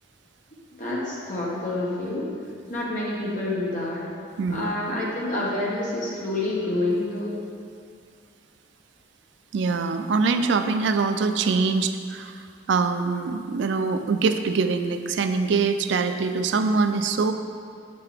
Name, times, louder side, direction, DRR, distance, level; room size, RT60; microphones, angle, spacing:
voice 1, 0.8-2.3 2.7-4.0 4.5-7.4, left 2 dB, 40° left, -5 dB, 1.4 m, -28 dB
voice 2, 4.4-4.7 9.5-12.4 12.7-17.3, right 4 dB, 70° right, 8 dB, 0.4 m, -23 dB
7.6 x 5.7 x 3.4 m, 2.2 s
head